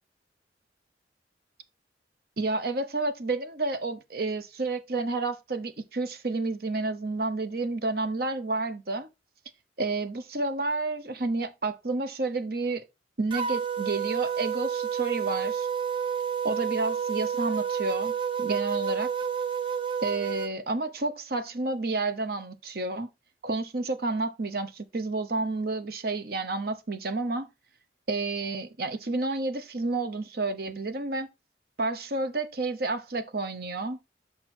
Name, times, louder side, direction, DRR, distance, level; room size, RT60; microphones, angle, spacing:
voice 1, 2.4-9.1 9.8-12.8 13.2-15.7 16.4-19.1 20.0-23.1 23.4-27.5 28.1-31.3 31.8-34.0, right 3 dB, 60° right, 0.9 m, -30 dB
sound 1, 13.3-20.5, right 7 dB, 30° right, 0.7 m, -30 dB
6.4 x 5.1 x 4.3 m
head